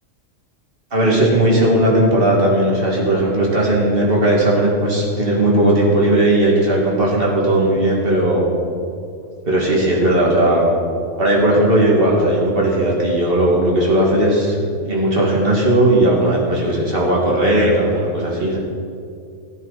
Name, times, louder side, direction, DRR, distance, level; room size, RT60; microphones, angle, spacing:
voice 1, 0.9-8.5 9.4-10.7 11.2-18.6, right 1 dB, 45° right, -3 dB, 2.5 m, -16 dB
15.5 x 8.9 x 4.2 m, 2.4 s
omnidirectional pair, 1.3 m